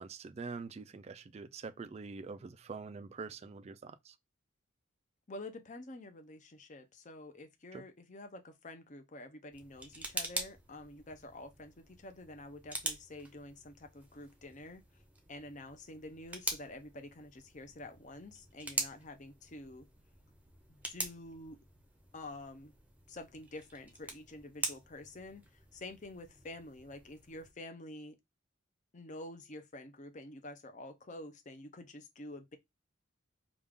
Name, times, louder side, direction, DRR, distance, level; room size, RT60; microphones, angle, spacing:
voice 1, 0.0-4.2 7.7-7.8, right 4 dB, 30° right, 0.3 m, -45 dB
voice 2, 5.3-14.8 15.3-19.9 20.7-21.6 22.1-22.7 23.1-25.4 25.7-28.2 28.9-32.6, left 2 dB, 40° left, 0.7 m, -48 dB
sound 1, 9.5-27.5, right 2 dB, 5° right, 0.7 m, -44 dB
5.1 x 2.4 x 3.6 m
head